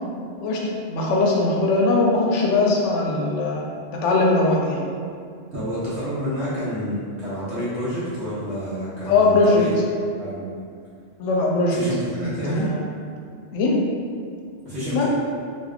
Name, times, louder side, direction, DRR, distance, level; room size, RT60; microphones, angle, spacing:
voice 1, 0.4-3.6 3.9-4.8 9.1-9.6 11.2-11.8 12.2-12.8 13.5-13.8 14.9-15.1, left 3 dB, 80° left, -2 dB, 0.9 m, -20 dB
voice 2, 5.5-9.8 10.2-10.4 11.7-12.7 14.6-15.1, equal, 65° right, -11 dB, 1.1 m, -28 dB
3.4 x 2.8 x 2.3 m, 2.2 s
omnidirectional pair, 1.2 m